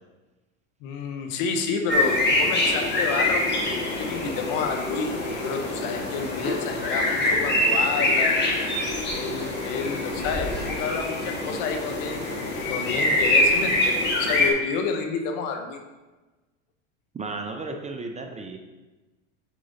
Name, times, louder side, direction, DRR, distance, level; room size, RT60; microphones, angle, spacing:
voice 1, 0.8-5.1 5.4-8.4 9.1-12.2 12.7-15.8, left 5 dB, 60° left, 5 dB, 1.2 m, -30 dB
sound 1, 1.9-14.5, left 1 dB, 30° left, 1.8 m, -24 dB
voice 2, 17.1-18.6, right 3 dB, 20° right, 4 dB, 0.6 m, -34 dB
7.4 x 4.9 x 4.1 m, 1.2 s
supercardioid pair, 105°, 38 cm